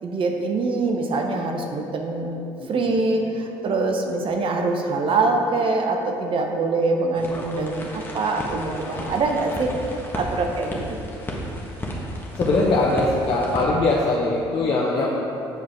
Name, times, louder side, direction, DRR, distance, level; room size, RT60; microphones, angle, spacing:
voice 1, 0.0-2.4 2.7-9.7 10.1-11.0, right 3 dB, 55° right, 3 dB, 0.9 m, -24 dB
voice 2, 2.6-3.0 8.8-9.2 12.3-15.1, left 2 dB, 50° left, -4 dB, 1.0 m, -22 dB
sound 1, 7.1-13.6, equal, 20° left, 1.5 m, -33 dB
8.0 x 4.9 x 4.6 m, 2.8 s
supercardioid pair, 65°, 11 cm